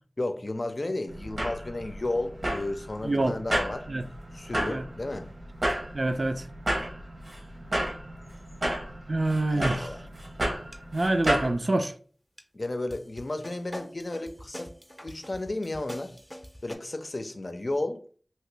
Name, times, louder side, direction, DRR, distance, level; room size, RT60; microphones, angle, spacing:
voice 1, 0.2-3.9 4.3-5.3 8.2-8.4 9.3-10.0 12.5-14.7 15.0-16.1 16.6-18.0, left 2 dB, 60° left, 0.5 m, -33 dB
sound 1, 1.1-11.5, right 1 dB, 80° right, 0.9 m, -32 dB
voice 2, 3.0-3.4 3.9-4.0 4.7-4.8 5.9-6.5 9.1-9.9 10.9-11.9, right 2 dB, 60° right, 0.3 m, -26 dB
sound 2, 10.7-10.8 11.2-11.5 11.8-11.9 12.4-12.5 12.9-16.8, equal, 5° left, 0.6 m, -44 dB
2.9 x 2.9 x 3.3 m
wide cardioid pair, 55°, 0 cm